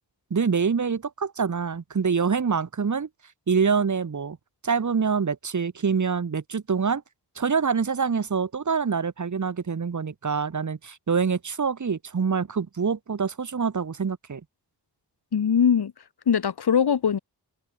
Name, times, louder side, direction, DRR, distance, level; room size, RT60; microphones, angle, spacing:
voice 1, 0.3-3.1 3.5-4.4 4.6-7.0 7.4-14.4, right 5 dB, 50° right, 2.2 m, -25 dB
voice 2, 15.3-15.9 16.3-17.2, left 7 dB, 75° left, 2.8 m, -21 dB
wide cardioid pair, 115°, 39 cm